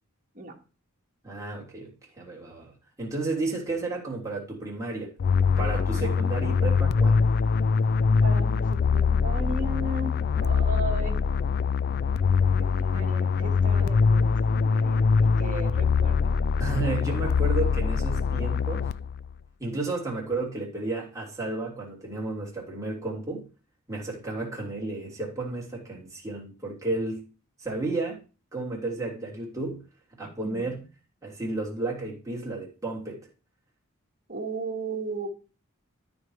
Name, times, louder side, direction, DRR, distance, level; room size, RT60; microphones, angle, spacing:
voice 1, 1.2-5.1 5.6-7.2 16.6-18.8 19.6-23.5 23.9-27.2 27.6-28.2 28.5-29.8 30.2-30.8 31.2-33.2, right 2 dB, 15° right, 3.0 m, -32 dB
sound 1, 5.2-19.3, left 5 dB, 50° left, 0.3 m, -23 dB
voice 2, 8.2-11.3 12.7-16.3 16.7-17.2 30.2-30.7 34.3-35.3, right 2 dB, 40° right, 2.2 m, -36 dB
13.0 x 4.5 x 4.9 m
head